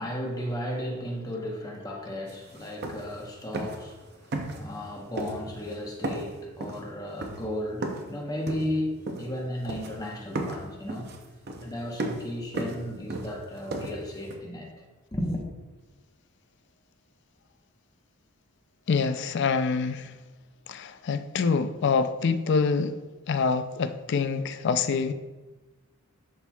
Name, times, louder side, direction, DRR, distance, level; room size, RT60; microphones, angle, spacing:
voice 1, 0.0-11.2 11.6-14.8 15.1-15.4, left 1 dB, 15° left, 0.9 m, -34 dB
sound 1, 2.3-2.4 2.6-3.2 3.5-3.9 4.3-4.9 5.2-5.7 6.0-8.1 8.5-9.4 9.7-10.1 10.3-14.4, right 2 dB, 45° right, 0.7 m, -35 dB
voice 2, 18.9-20.1 20.7-23.0 23.3-25.1, left 5 dB, 50° left, 0.3 m, -26 dB
11.0 x 4.4 x 2.3 m
head